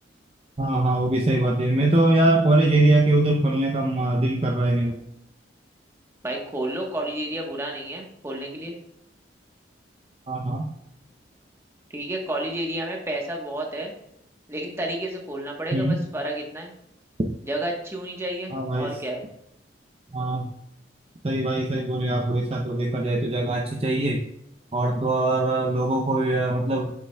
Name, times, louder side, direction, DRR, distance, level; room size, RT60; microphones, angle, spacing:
voice 1, 0.6-4.9 10.3-10.7 15.7-16.0 18.5-18.9 20.1-20.5 21.2-24.2 24.7-26.9, right 2 dB, 30° right, -1 dB, 0.6 m, -22 dB
voice 2, 6.2-8.7 11.9-13.9 14.5-16.7 17.4-19.2, right 1 dB, 15° right, 0 dB, 1.2 m, -31 dB
8.0 x 7.0 x 2.3 m, 0.78 s
head